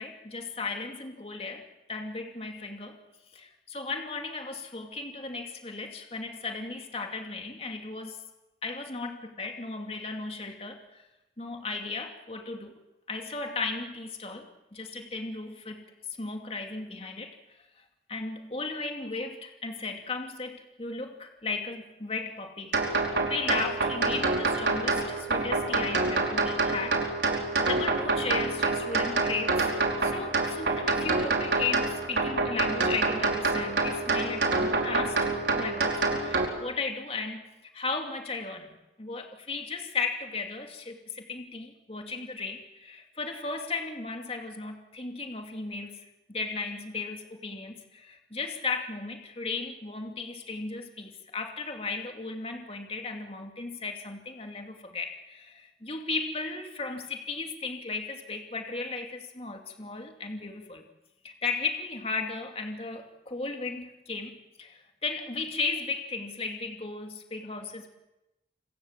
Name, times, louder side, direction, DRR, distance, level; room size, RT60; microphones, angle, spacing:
voice 1, 0.0-1.6 1.9-3.0 3.3-8.2 8.6-11.0 11.4-12.7 13.1-17.6 18.1-27.0 27.6-29.7 30.0-37.4 37.7-60.8 61.2-67.9, left 4 dB, 35° left, 3 dB, 2.6 m, -35 dB
sound 1, 22.7-36.5, right 3 dB, 85° right, 4.8 m, -27 dB
28.5 x 25.0 x 7.4 m, 0.96 s
head